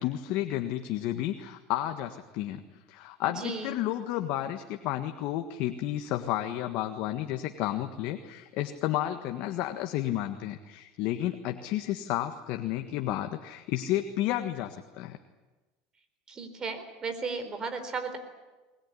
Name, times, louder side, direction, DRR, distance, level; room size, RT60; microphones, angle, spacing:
voice 1, 0.0-15.2, left 13 dB, 60° left, 6 dB, 1.6 m, -32 dB
voice 2, 3.4-3.7 16.3-18.2, right 4 dB, 25° right, 8 dB, 4.2 m, -35 dB
22.0 x 20.5 x 10.0 m, 1.2 s
supercardioid pair, 130°, 3 cm